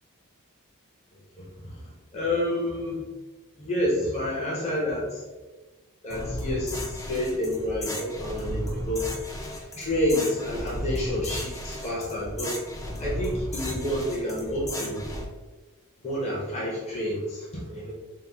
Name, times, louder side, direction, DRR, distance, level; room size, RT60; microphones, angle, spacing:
voice 1, 1.4-1.8 2.1-3.0 3.6-5.3 6.0-9.1 9.8-12.6 13.0-15.1 16.0-17.9, left 1 dB, 30° left, -6 dB, 0.9 m, -29 dB
sound 1, 6.1-15.2, equal, 15° left, 0.5 m, -34 dB
5.6 x 2.1 x 3.4 m, 1.2 s
head